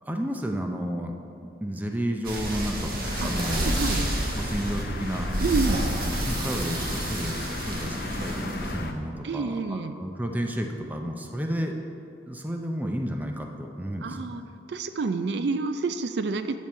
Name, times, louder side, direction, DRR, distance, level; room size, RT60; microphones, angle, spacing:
voice 1, 0.0-1.1 1.4-3.8 4.3-5.3 6.1-7.3 7.7-11.8 12.3-14.4, equal, 10° right, 3 dB, 0.6 m, -32 dB
sound 1, 2.2-8.9, right 1 dB, 55° right, 1.4 m, -29 dB
sound 2, 3.0-8.9, left 3 dB, 55° left, 0.6 m, -37 dB
voice 2, 3.6-4.1 5.4-5.9 9.2-9.9 14.0-14.4 14.7-16.6, right 4 dB, 70° right, 10 dB, 0.4 m, -28 dB
9.9 x 7.1 x 4.6 m, 2.7 s
head